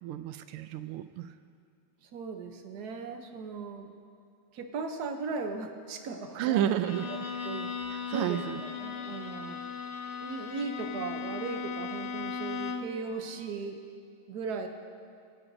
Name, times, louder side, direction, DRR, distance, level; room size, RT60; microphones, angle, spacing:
voice 1, 0.0-1.3 6.4-7.1 7.9-8.6, right 11 dB, 90° right, 11 dB, 1.5 m, -31 dB
voice 2, 2.1-3.9 4.5-6.7 7.1-7.2 7.4-7.7 8.1-8.4 8.8-9.6 10.2-13.8 14.3-14.7, right 4 dB, 60° right, 6 dB, 1.1 m, -37 dB
Bowed string instrument, 6.8-13.0, left 5 dB, 60° left, 1.1 m, -37 dB
25.5 x 8.9 x 2.7 m, 2.4 s
omnidirectional pair, 2.4 m